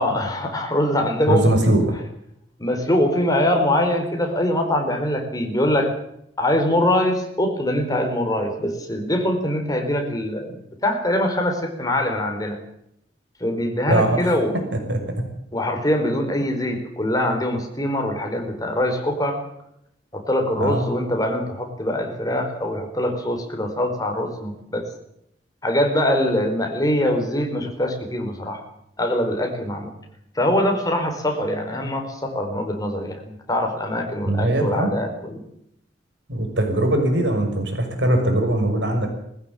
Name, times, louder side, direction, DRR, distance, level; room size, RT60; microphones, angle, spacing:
voice 1, 0.0-1.5 2.6-5.9 6.4-12.6 13.4-14.6 15.5-19.4 20.1-24.9 25.6-28.6 29.0-29.9 30.3-35.4, left 1 dB, 20° left, 4 dB, 4.4 m, -23 dB
voice 2, 1.3-1.8 13.9-14.4 14.9-15.2 20.6-20.9 34.3-34.9 36.3-39.1, right 1 dB, 80° right, 4 dB, 6.1 m, -21 dB
20.5 x 15.5 x 9.0 m, 0.75 s
head